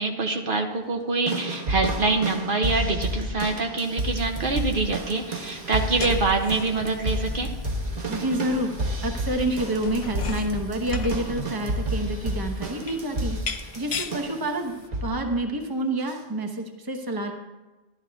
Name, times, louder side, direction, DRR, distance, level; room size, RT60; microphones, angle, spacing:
voice 1, 0.0-7.5, right 3 dB, 55° right, 3 dB, 1.0 m, -25 dB
sound 1, 1.3-14.5 14.9-15.3 16.1-16.2, right 1 dB, 40° right, 1.2 m, -30 dB
sound 2, 3.9-14.9, left 5 dB, 40° left, 0.5 m, -39 dB
voice 2, 8.1-8.7 9.0-17.3, right 1 dB, 20° right, 4 dB, 1.0 m, -28 dB
12.5 x 11.5 x 3.5 m, 1.1 s
omnidirectional pair, 1.1 m